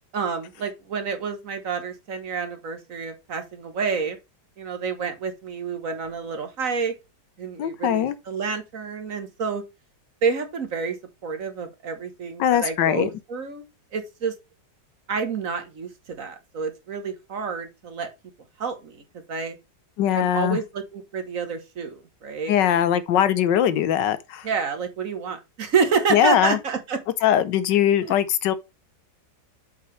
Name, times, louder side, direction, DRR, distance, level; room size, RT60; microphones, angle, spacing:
voice 1, 0.1-4.2 4.6-6.9 7.4-9.6 10.2-11.0 11.2-13.6 13.9-14.3 15.1-18.1 18.6-19.6 20.1-22.5 24.4-27.0, right 5 dB, 55° right, 1.5 m, -28 dB
voice 2, 7.6-8.2 12.4-13.1 20.0-20.6 22.5-24.5 26.1-26.6 27.2-28.5, left 10 dB, 85° left, 1.4 m, -21 dB
7.6 x 5.7 x 3.2 m
omnidirectional pair, 1.9 m